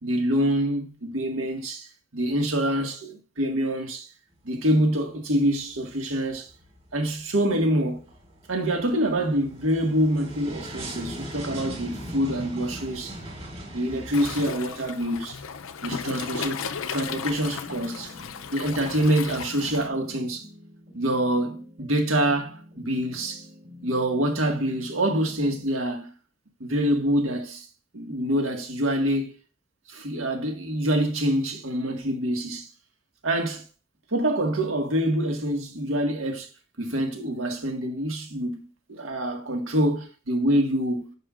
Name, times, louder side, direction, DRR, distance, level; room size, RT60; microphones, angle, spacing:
voice 1, 0.0-1.9 2.1-4.1 4.4-6.5 6.9-8.0 8.5-13.2 13.7-15.4 15.8-16.6 16.9-18.1 18.5-20.5 21.0-23.5 23.8-26.1 26.6-27.7 27.9-29.4 29.9-32.7 33.2-33.6 34.1-36.5 36.8-38.6 38.9-41.2, right 1 dB, 80° right, 1.8 m, -26 dB
sound 1, 4.3-5.0 5.3-14.5, equal, 30° right, 3.8 m, -40 dB
Waves surf, 14.1-19.9, left 6 dB, 85° left, 0.6 m, -35 dB
sound 2, 16.9-25.7, left 1 dB, 45° right, 4.4 m, -47 dB
9.8 x 6.7 x 2.5 m
head